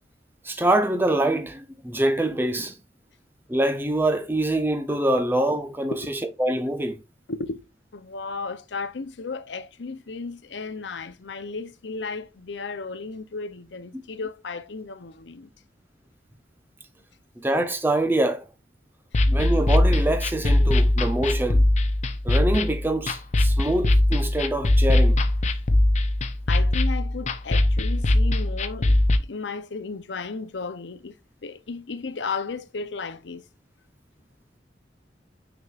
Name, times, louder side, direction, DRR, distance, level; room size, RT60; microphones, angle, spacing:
voice 1, 0.4-2.8 3.5-7.0 17.4-18.5 19.3-21.7 22.2-25.2, right 1 dB, 10° right, 0.8 m, -25 dB
voice 2, 7.3-7.6 7.9-15.5 26.5-33.4, left 4 dB, 85° left, 0.7 m, -34 dB
sound 1, 19.1-29.2, left 1 dB, 40° left, 0.6 m, -21 dB
6.3 x 6.0 x 2.4 m
head